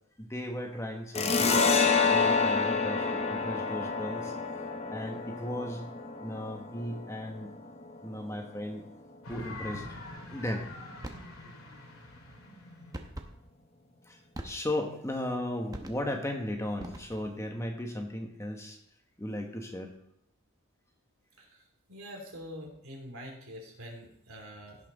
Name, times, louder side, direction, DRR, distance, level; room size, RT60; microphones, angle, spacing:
voice 1, 0.2-1.7 2.1-4.3 4.9-5.8 6.2-7.5 8.0-8.8 9.3-9.9 10.3-10.6 14.1-18.8 19.2-19.9, left 1 dB, 15° left, 3 dB, 1.2 m, -36 dB
sound 1, 1.1-8.3, left 4 dB, 30° left, 0.8 m, -28 dB
sound 2, 9.2-14.1, left 2 dB, 80° left, 2.3 m, -45 dB
sound 3, 11.0-11.3 12.9-13.4 14.3-14.9 15.7-16.2 16.8-17.4, right 1 dB, 15° right, 0.9 m, -43 dB
voice 2, 21.9-24.8, equal, 75° right, 1 dB, 3.0 m, -45 dB
16.5 x 5.9 x 4.0 m, 0.75 s
head